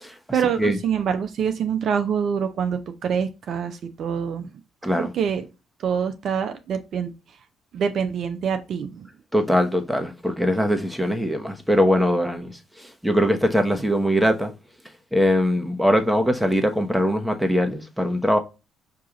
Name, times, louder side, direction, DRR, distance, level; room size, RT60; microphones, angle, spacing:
voice 1, 0.3-4.5 5.0-5.5 5.8-7.1 7.7-9.1, right 7 dB, 60° right, 0.5 m, -25 dB
voice 2, 4.8-5.1 9.3-14.5 15.1-18.4, equal, ahead, 1.1 m, -21 dB
4.7 x 2.9 x 3.7 m
hypercardioid pair, 55°, 0 cm